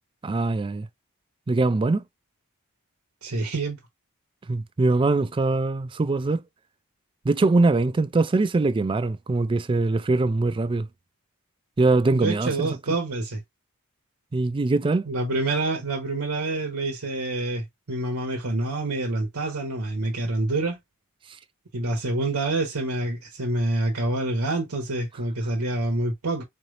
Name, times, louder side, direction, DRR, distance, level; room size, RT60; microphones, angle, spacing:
voice 1, 0.2-0.9 1.5-2.0 4.5-6.4 7.3-10.9 11.8-12.8 14.3-15.1, right 3 dB, 25° right, 0.3 m, -22 dB
voice 2, 3.2-3.8 12.1-13.4 15.1-20.8 21.7-26.4, right 2 dB, 80° right, 1.1 m, -27 dB
4.3 x 3.3 x 2.5 m
head